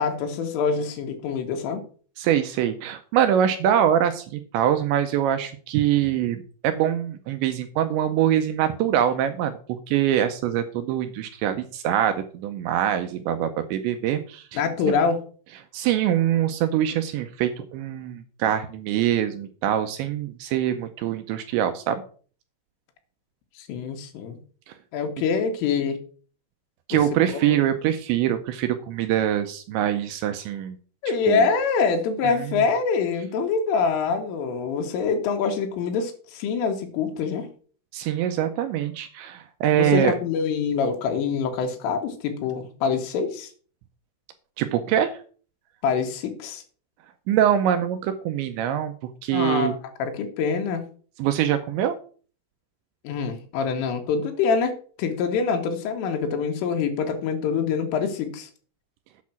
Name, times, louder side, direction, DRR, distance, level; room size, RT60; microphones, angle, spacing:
voice 1, 0.0-1.8 14.5-15.2 23.6-24.4 24.9-26.0 26.9-27.0 27.3-27.6 31.0-37.5 39.7-43.5 45.8-46.6 49.3-50.8 53.1-54.7 55.0-58.5, left 5 dB, 80° left, 4 dB, 4.0 m, -25 dB
voice 2, 2.2-14.4 15.7-22.0 26.9-30.8 31.3-31.5 32.2-32.6 37.9-40.1 44.6-45.1 47.3-48.9 49.2-49.7 51.2-52.0, right 10 dB, 80° right, 9 dB, 2.7 m, -24 dB
8.3 x 6.5 x 5.9 m, 0.42 s
omnidirectional pair, 5.7 m